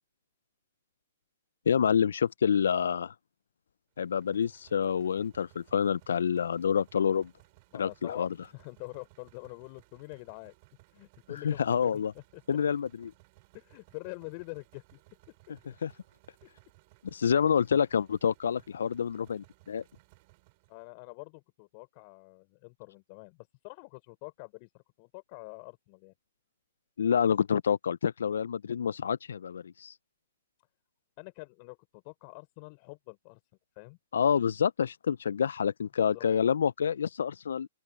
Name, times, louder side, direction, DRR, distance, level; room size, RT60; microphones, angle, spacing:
voice 1, 1.7-3.1 4.0-7.3 7.7-8.3 11.4-12.1 12.5-13.1 15.8-15.9 17.1-19.8 27.0-29.9 34.1-37.7, left 7 dB, 75° left, 0.4 m, -27 dB
sound 1, 4.0-20.9, right 25 dB, 45° right, 6.9 m, -62 dB
voice 2, 7.7-10.5 10.9-12.4 13.5-15.0 15.3-15.7 17.2-17.3 20.7-23.4 23.6-26.1 31.2-33.4 33.8-34.0 36.0-36.3, left 33 dB, 40° left, 4.2 m, -46 dB
open air
hypercardioid pair, 125°, 0 cm